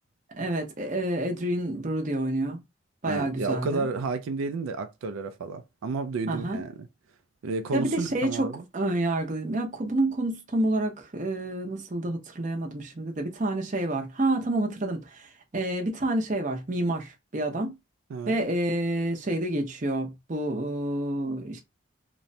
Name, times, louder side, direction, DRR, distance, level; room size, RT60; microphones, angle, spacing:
voice 1, 0.4-2.6 3.0-3.9 6.3-6.6 7.7-15.3 15.5-17.7 18.3-21.6, right 1 dB, 40° right, 0.6 m, -28 dB
voice 2, 3.1-6.8 7.4-8.6 18.1-18.4, right 4 dB, 90° right, 0.4 m, -31 dB
3.0 x 2.1 x 2.6 m
head